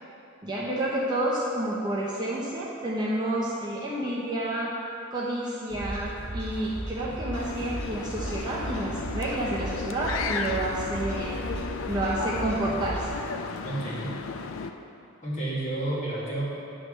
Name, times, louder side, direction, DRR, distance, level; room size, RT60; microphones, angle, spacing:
voice 1, 0.4-4.7 5.1-11.4 11.9-13.1, right 1 dB, 20° right, -6 dB, 0.8 m, -29 dB
sound 1, 5.7-13.2, right 1 dB, 5° left, 1.9 m, -36 dB
sound 2, 7.3-14.7, left 5 dB, 75° left, 0.4 m, -35 dB
voice 2, 13.6-14.1 15.2-16.4, right 2 dB, 35° left, -8 dB, 1.9 m, -30 dB
10.0 x 3.4 x 6.3 m, 2.7 s
head